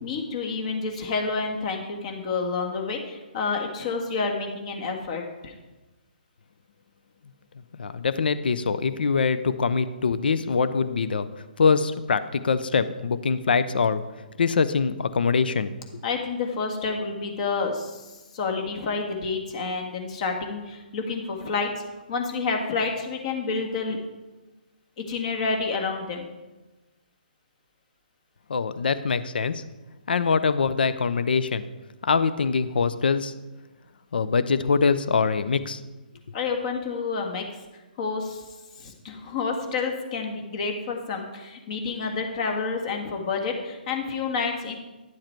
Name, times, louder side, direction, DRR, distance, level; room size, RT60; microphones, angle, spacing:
voice 1, 0.0-5.5 16.0-21.7 22.1-24.0 25.0-26.2 36.3-37.4 38.0-38.4 38.8-44.8, left 4 dB, 40° left, 3 dB, 1.6 m, -29 dB
voice 2, 7.7-11.3 11.6-14.0 14.4-15.7 28.5-29.6 30.1-31.6 32.0-33.3 34.1-35.8, left 5 dB, 70° left, 13 dB, 0.6 m, -23 dB
10.5 x 7.3 x 4.5 m, 1.1 s
hypercardioid pair, 140°, 5 cm